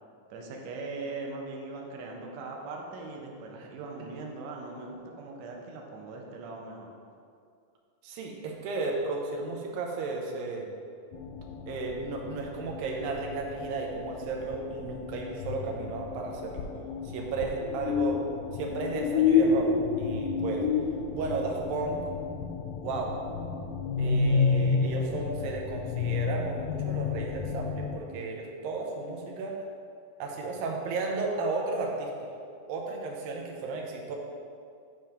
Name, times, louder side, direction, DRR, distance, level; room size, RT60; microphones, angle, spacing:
voice 1, 0.3-6.9 17.8-18.0, right 3 dB, 70° right, 0 dB, 1.7 m, -40 dB
voice 2, 8.0-10.7 11.7-16.7 17.0-18.2 18.5-19.7 20.0-20.7 21.1-22.0 22.8-23.1 24.0-29.7 30.2-32.3 32.7-34.2, right 3 dB, 90° right, 0 dB, 2.6 m, -34 dB
sound 1, 11.1-28.0, left 5 dB, 80° left, 2.2 m, -30 dB
9.1 x 3.2 x 5.7 m, 2.3 s
omnidirectional pair, 4.0 m